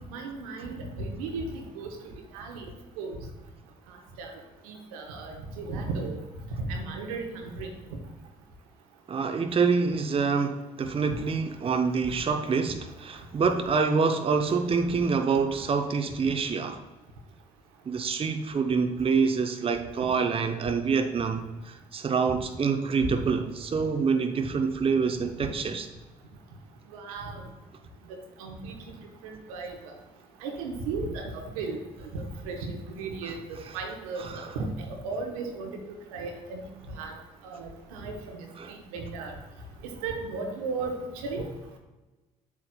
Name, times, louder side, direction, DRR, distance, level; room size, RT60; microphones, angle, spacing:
voice 1, 0.1-1.9 2.3-2.6 3.0-3.2 4.2-4.3 4.7-6.2 6.7-7.7 23.0-23.1 26.9-27.4 28.1-28.7 29.2-29.8 30.4-31.8 32.1-34.3 34.5-35.8 36.1-36.6 37.0-37.1 37.4-38.1 38.7-39.3 40.0-41.5, right 3 dB, 80° right, 3 dB, 0.9 m, -35 dB
voice 2, 9.1-16.8 17.9-25.9 34.2-34.5 38.6-38.7, right 5 dB, 30° right, 6 dB, 0.6 m, -26 dB
7.7 x 7.3 x 2.2 m, 1.1 s
hypercardioid pair, 45°, 18 cm